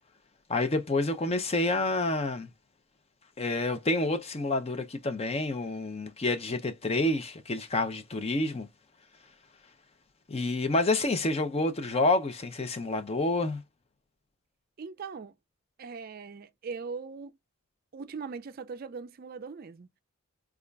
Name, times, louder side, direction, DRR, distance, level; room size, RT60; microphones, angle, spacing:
voice 1, 0.5-2.5 3.4-8.7 10.3-13.6, left 2 dB, 30° left, 0.5 m, -28 dB
voice 2, 14.8-15.3 15.8-17.3 17.9-20.0, right 5 dB, 45° right, 0.4 m, -40 dB
5.0 x 2.3 x 2.2 m
head